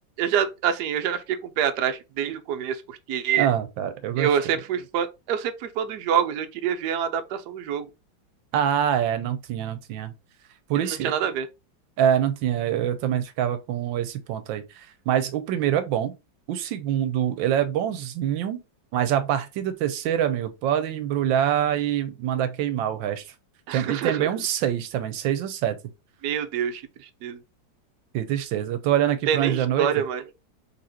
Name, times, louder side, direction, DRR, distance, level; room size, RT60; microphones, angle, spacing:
voice 1, 0.2-3.5 4.2-7.9 10.7-11.5 23.7-24.3 26.2-26.8 27.2-27.4 29.3-30.2, right 8 dB, 65° right, 1.2 m, -26 dB
voice 2, 3.4-4.6 8.5-10.1 10.7-11.1 12.0-16.1 16.5-18.6 18.9-23.2 23.7-25.8 28.1-29.9, right 10 dB, 90° right, 1.4 m, -25 dB
4.2 x 3.0 x 4.1 m
omnidirectional pair, 2.0 m